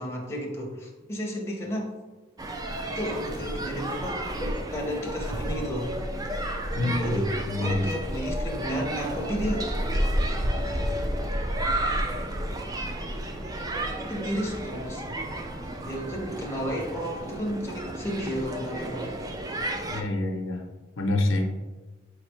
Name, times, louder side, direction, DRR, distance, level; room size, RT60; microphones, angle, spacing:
voice 1, 0.0-1.9 2.8-5.9 7.0-9.7 12.4-12.6 14.0-15.0 15.8-19.1, equal, 15° left, -1 dB, 0.7 m, -32 dB
sound 1, 2.4-20.0, right 1 dB, 20° right, 0.3 m, -31 dB
voice 2, 6.8-7.2 7.5-7.9 19.9-20.7 21.0-21.5, left 2 dB, 90° left, 3 dB, 0.7 m, -26 dB
4.8 x 3.1 x 3.1 m, 1.2 s
head